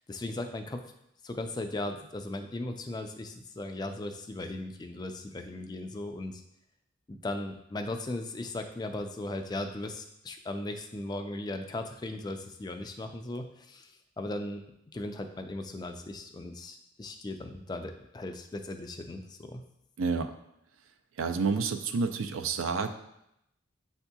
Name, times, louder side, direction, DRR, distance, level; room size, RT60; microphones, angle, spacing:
voice 1, 0.1-0.8 1.2-6.4 7.1-14.6 14.9-19.6, left 2 dB, 20° left, 5 dB, 0.3 m, -37 dB
voice 2, 20.0-20.3 21.2-22.9, right 4 dB, 90° right, 7 dB, 0.4 m, -29 dB
7.8 x 2.7 x 2.3 m, 0.80 s
head